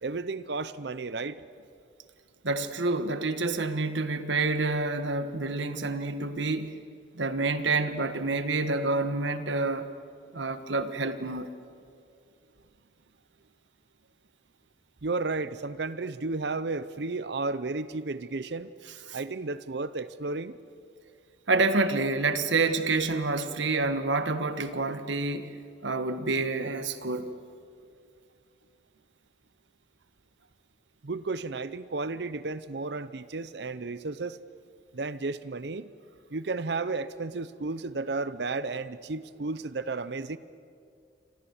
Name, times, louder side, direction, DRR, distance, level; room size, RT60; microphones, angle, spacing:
voice 1, 0.0-1.4 15.0-18.7 19.1-20.6 31.0-34.4 34.9-35.9 36.3-40.4, right 3 dB, 65° right, 0.7 m, -33 dB
voice 2, 2.4-6.8 7.1-9.9 10.3-11.5 19.1-19.2 21.5-25.6 25.8-27.3, right 3 dB, 85° right, 1.5 m, -28 dB
28.5 x 25.5 x 7.2 m
head